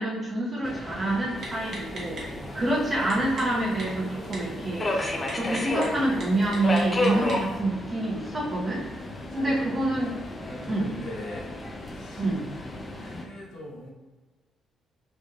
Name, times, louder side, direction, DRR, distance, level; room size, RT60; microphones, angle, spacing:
voice 1, 0.0-2.2 2.5-8.8 9.3-10.1 10.7-10.9 12.2-12.4, right 1 dB, 30° right, -4 dB, 1.0 m, -27 dB
Subway metro underground, 0.6-13.2, left 1 dB, 30° left, 0.5 m, -33 dB
Typing, 1.4-7.6, right 1 dB, 55° right, 1.1 m, -43 dB
voice 2, 8.9-9.8 10.4-11.5 11.9-12.3 13.0-13.9, left 1 dB, 80° left, -2 dB, 0.8 m, -41 dB
4.1 x 3.2 x 2.4 m, 1.2 s
cardioid pair, 90°, 0 cm